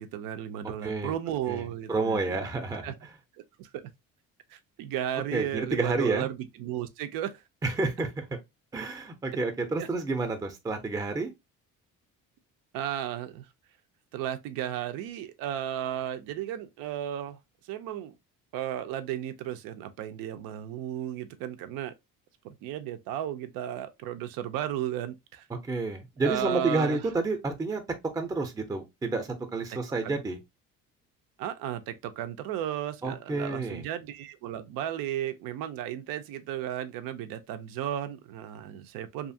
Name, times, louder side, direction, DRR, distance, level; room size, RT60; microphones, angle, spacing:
voice 1, 0.0-2.4 2.8-2.9 3.6-3.8 4.5-7.4 9.8-9.9 12.7-13.5 14.1-17.4 17.6-18.1 18.5-21.9 22.4-25.5 26.2-27.0 29.7-29.8 30.0-30.2 31.4-39.3, right 11 dB, 90° right, 0.5 m, -34 dB
voice 2, 0.8-1.2 1.5-2.9 5.3-6.3 7.6-8.3 8.7-11.3 25.5-27.8 28.1-30.4 33.0-33.8, right 3 dB, 10° right, 0.4 m, -30 dB
2.7 x 2.4 x 2.6 m
cardioid pair, 115°, 34 cm